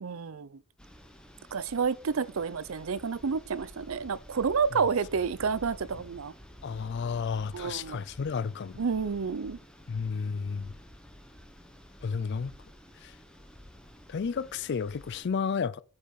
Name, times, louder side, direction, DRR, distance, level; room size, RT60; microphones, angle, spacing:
voice 1, 0.0-0.5 1.5-6.3 7.5-8.0 8.8-9.6, right 5 dB, 70° right, 0.5 m, -30 dB
sound 1, 0.8-15.3, equal, 5° left, 1.2 m, -51 dB
voice 2, 6.6-8.8 9.9-10.7 12.0-12.5 13.0-13.1 14.1-15.8, left 5 dB, 50° left, 0.4 m, -32 dB
8.5 x 5.7 x 4.8 m
head